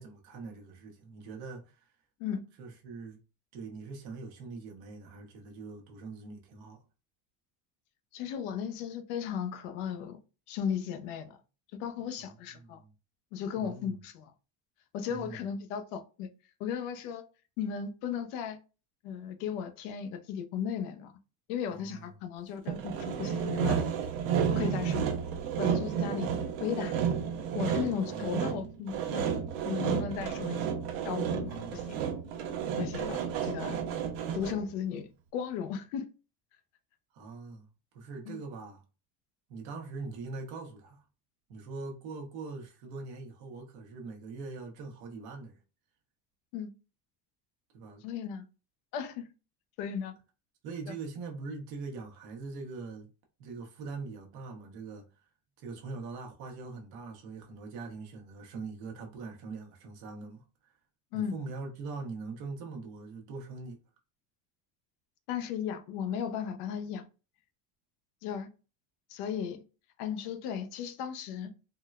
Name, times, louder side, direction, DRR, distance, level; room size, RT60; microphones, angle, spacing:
voice 1, 0.0-1.9 2.6-3.2 3.5-6.8 12.2-12.9 13.6-14.0 15.1-15.4 21.7-22.1 28.0-28.3 31.5-31.8 37.1-37.7 37.9-38.8 39.5-41.0 41.5-45.6 47.7-48.0 50.6-53.1 53.4-55.1 55.6-60.4 61.1-63.8, right 4 dB, 55° right, 1.0 m, -42 dB
voice 2, 8.1-10.2 10.5-11.4 11.7-12.8 13.3-14.3 14.9-16.3 16.6-17.2 17.6-18.6 19.0-21.1 21.5-23.8 24.5-25.1 25.6-26.3 26.6-27.0 27.5-29.3 29.6-30.6 31.0-32.0 32.8-33.8 34.3-36.1 38.3-38.4 46.5-46.7 48.0-48.5 48.9-49.3 49.8-50.1 61.1-61.4 65.3-67.1 68.2-68.5 69.1-69.6 70.0-71.5, left 8 dB, 80° left, 0.7 m, -36 dB
Sawing, 22.7-34.7, right 7 dB, 90° right, 0.8 m, -32 dB
3.7 x 2.1 x 2.3 m
cardioid pair, 175°, 45 cm